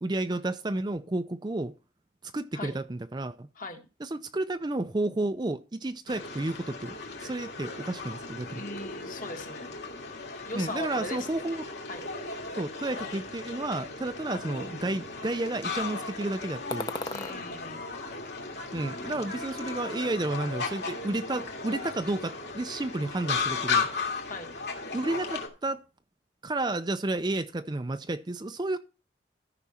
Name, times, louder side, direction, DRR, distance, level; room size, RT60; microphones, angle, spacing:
voice 1, 0.0-1.7 2.2-3.5 4.0-8.6 10.5-11.6 12.6-16.9 18.7-23.9 24.9-25.8 26.4-28.8, right 2 dB, 20° right, 0.4 m, -31 dB
voice 2, 3.5-3.9 8.5-9.7 10.4-11.3 11.9-12.1 17.1-17.8 24.3-24.5, left 2 dB, 45° left, 1.7 m, -39 dB
sound 1, 6.1-25.5, left 4 dB, 60° left, 2.5 m, -36 dB
sound 2, 16.7-17.4 17.9-18.9 19.2-20.0, left 2 dB, 20° left, 0.7 m, -39 dB
14.0 x 6.0 x 4.2 m
head